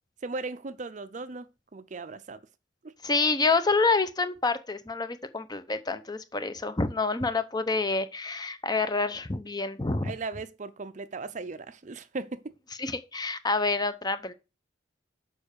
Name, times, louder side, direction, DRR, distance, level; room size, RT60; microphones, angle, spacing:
voice 1, 0.2-1.5 1.7-2.4 2.8-2.9 10.0-12.4, right 3 dB, 40° right, 0.5 m, -37 dB
voice 2, 3.0-10.1 12.8-14.3, left 3 dB, 20° left, 0.7 m, -27 dB
7.0 x 5.5 x 6.6 m
head